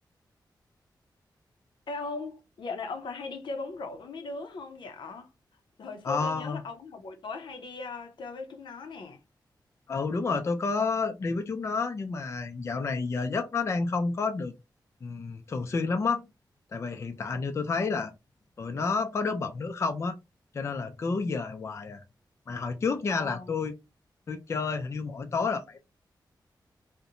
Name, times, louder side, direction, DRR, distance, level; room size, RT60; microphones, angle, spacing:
voice 1, 1.9-5.3 5.8-9.2 23.1-23.6, left 3 dB, 85° left, 0.6 m, -38 dB
voice 2, 6.0-6.6 9.9-14.5 15.0-16.2 16.7-18.1 18.6-20.2 20.5-22.0 22.5-23.7 24.3-25.8, left 4 dB, 35° left, 0.3 m, -30 dB
2.5 x 2.1 x 2.8 m
wide cardioid pair, 155°, 8 cm